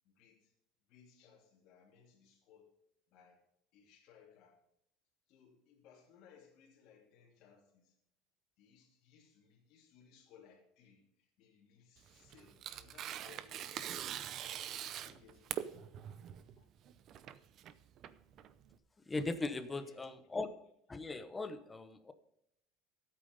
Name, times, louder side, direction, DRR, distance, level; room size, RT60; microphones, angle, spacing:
voice 1, 0.0-0.5 0.9-2.8 3.1-3.4 3.7-4.7 5.3-8.0 8.6-15.7 16.2-16.7 19.7-20.2, left 7 dB, 50° left, -2 dB, 2.8 m, -64 dB
Tearing, 12.0-18.7, right 10 dB, 35° right, 0.7 m, -44 dB
voice 2, 19.1-20.5 20.9-22.1, left 3 dB, 10° left, 11 dB, 0.9 m, -39 dB
13.5 x 8.6 x 5.3 m, 0.76 s
cardioid pair, 165°, 0 cm